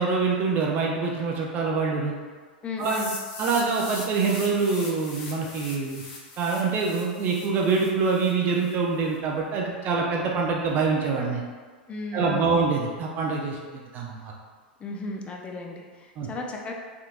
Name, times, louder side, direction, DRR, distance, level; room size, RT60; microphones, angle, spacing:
voice 1, 0.0-2.1 2.8-3.0 3.4-6.0 6.4-11.4 12.1-14.3 16.2-16.3, right 4 dB, 35° right, -2 dB, 0.5 m, -25 dB
voice 2, 2.6-3.2 11.9-12.8 14.8-16.7, left 2 dB, 20° left, 1 dB, 0.5 m, -35 dB
sound 1, 2.8-8.7, left 3 dB, 40° left, 0.8 m, -40 dB
3.4 x 2.8 x 2.4 m, 1.5 s
hypercardioid pair, 95°, 5 cm